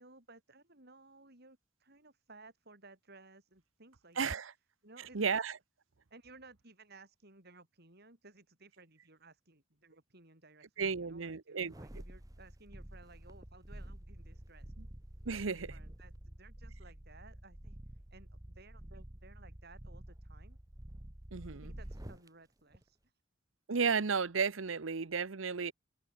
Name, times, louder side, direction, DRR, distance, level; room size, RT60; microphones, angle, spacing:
voice 1, 0.0-4.4 4.8-5.4 6.1-14.7 15.5-20.6 21.5-23.2, right 3 dB, 55° right, 7.8 m, -59 dB
voice 2, 4.2-4.5 5.1-5.5 10.8-11.7 15.3-15.7 21.3-21.7 23.7-25.7, right 5 dB, 80° right, 0.9 m, -33 dB
sound 1, 11.6-22.3 22.7-22.8, right 1 dB, 20° right, 1.2 m, -49 dB
open air
head